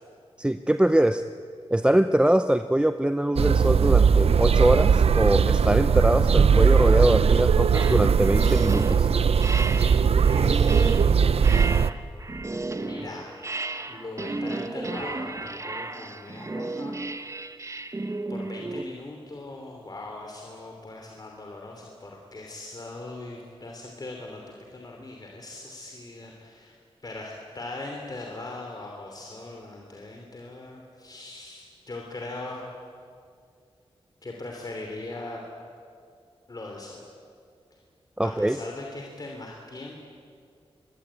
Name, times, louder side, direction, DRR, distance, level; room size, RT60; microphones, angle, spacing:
voice 1, 0.4-1.2 1.7-9.1 38.2-38.6, right 1 dB, 10° right, 9 dB, 0.6 m, -23 dB
sound 1, 3.4-11.9, right 6 dB, 75° right, 0.7 m, -19 dB
sound 2, 7.7-18.8, right 2 dB, 30° right, 1.2 m, -33 dB
voice 2, 11.3-11.9 12.8-13.3 13.9-17.0 18.3-24.4 24.7-26.8 27.0-32.7 34.2-35.4 36.5-37.0 38.2-40.0, left 2 dB, 40° left, 1 dB, 3.1 m, -40 dB
25.5 x 21.5 x 8.9 m, 2.3 s
wide cardioid pair, 105°, 10 cm